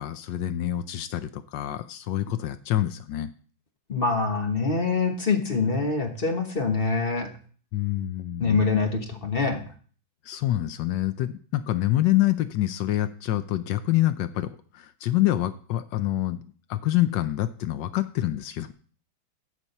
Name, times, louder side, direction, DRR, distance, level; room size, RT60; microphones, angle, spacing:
voice 1, 0.0-3.3 7.7-8.6 10.3-16.4 16.7-18.7, left 14 dB, 75° left, 11 dB, 1.2 m, -26 dB
voice 2, 3.9-7.3 8.4-9.6, left 4 dB, 35° left, 3 dB, 1.0 m, -25 dB
13.0 x 4.4 x 5.4 m, 0.43 s
omnidirectional pair, 2.2 m